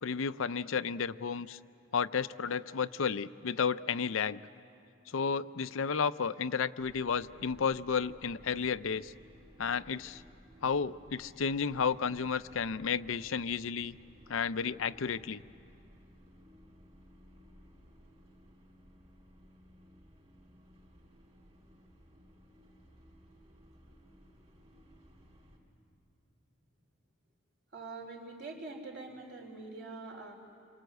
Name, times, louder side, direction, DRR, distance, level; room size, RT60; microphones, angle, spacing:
voice 1, 0.0-1.6 1.9-4.4 5.1-9.1 9.6-10.2 10.6-14.0 14.3-15.4, left 6 dB, 85° left, 13 dB, 0.6 m, -32 dB
sound 1, 6.8-25.6, equal, 30° right, 3.8 m, -59 dB
voice 2, 27.7-30.3, right 3 dB, 55° right, 0 dB, 4.2 m, -44 dB
28.0 x 24.5 x 8.1 m, 2.5 s
head